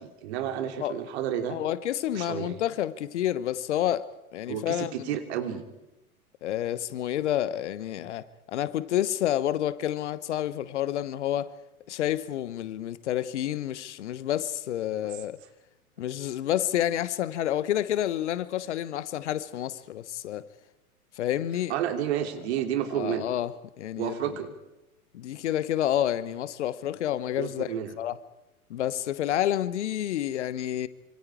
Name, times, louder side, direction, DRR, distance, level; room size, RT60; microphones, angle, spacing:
voice 1, 0.0-1.6 2.1-2.6 4.5-5.6 21.7-23.3 24.0-24.5 27.4-27.9, right 10 dB, 45° right, 3.1 m, -31 dB
voice 2, 1.5-5.1 6.4-11.5 11.9-15.4 16.0-20.5 21.2-21.7 22.9-24.2 25.1-28.2 28.7-30.9, left 12 dB, 50° left, 1.1 m, -29 dB
27.0 x 25.5 x 4.8 m
figure-of-eight pair, 100°, 44 cm